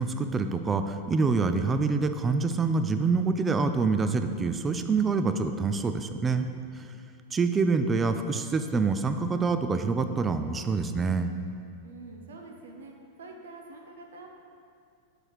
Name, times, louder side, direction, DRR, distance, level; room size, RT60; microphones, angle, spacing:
voice 1, 0.0-6.5 6.8-6.9 7.3-11.3, right 4 dB, 15° right, 8 dB, 0.3 m, -26 dB
voice 2, 11.8-14.3, right 3 dB, 65° right, 2 dB, 0.7 m, -46 dB
6.3 x 4.3 x 4.7 m, 2.4 s
figure-of-eight pair, 90°, 0 cm